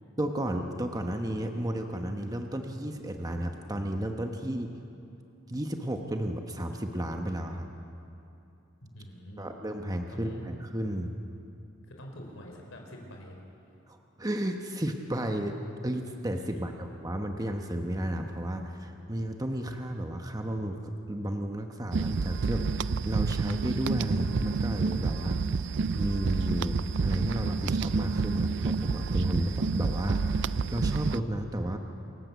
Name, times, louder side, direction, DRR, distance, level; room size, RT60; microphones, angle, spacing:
voice 1, 0.2-4.7 5.5-7.7 9.4-11.1 13.9-15.6 15.8-25.4 25.9-31.8, right 1 dB, 20° right, 4 dB, 1.1 m, -33 dB
voice 2, 8.8-9.5 10.1-10.4 11.9-13.4 16.6-16.9, equal, 85° left, 1 dB, 4.1 m, -46 dB
sound 1, 21.9-31.2, right 4 dB, 65° right, 0.5 m, -29 dB
28.0 x 14.5 x 8.2 m, 2.8 s
head